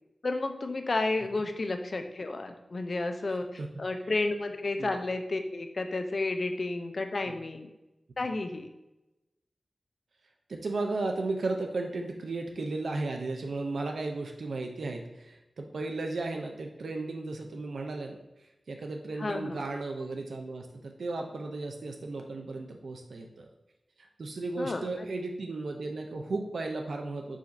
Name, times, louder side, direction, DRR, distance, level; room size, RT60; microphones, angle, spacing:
voice 1, 0.2-7.7 8.2-8.7 19.2-19.6 24.6-25.1, left 2 dB, 55° left, 6 dB, 0.5 m, -32 dB
voice 2, 10.5-18.2 18.7-23.5 24.0-27.4, right 3 dB, 85° right, 3 dB, 0.4 m, -35 dB
4.9 x 2.5 x 4.0 m, 0.97 s
wide cardioid pair, 65°, 0 cm